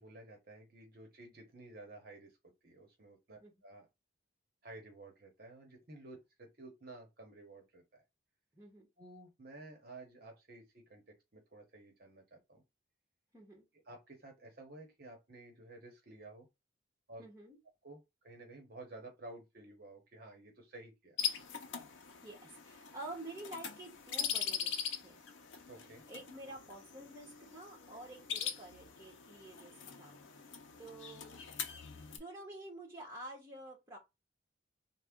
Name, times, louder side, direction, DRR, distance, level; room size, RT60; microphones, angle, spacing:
voice 1, 0.0-3.9 4.6-8.0 9.0-12.6 13.8-16.5 17.1-17.2 17.8-21.2 25.7-26.0, right 2 dB, 45° right, 0.9 m, -53 dB
voice 2, 8.5-8.9 13.3-13.6 17.2-17.6 22.2-24.7 25.0-25.2 26.1-29.7 30.0-30.5 30.8-31.5 31.9-34.0, right 1 dB, 15° right, 1.1 m, -49 dB
sound 1, 21.2-32.2, left 7 dB, 65° left, 0.6 m, -42 dB
3.3 x 2.2 x 3.5 m
head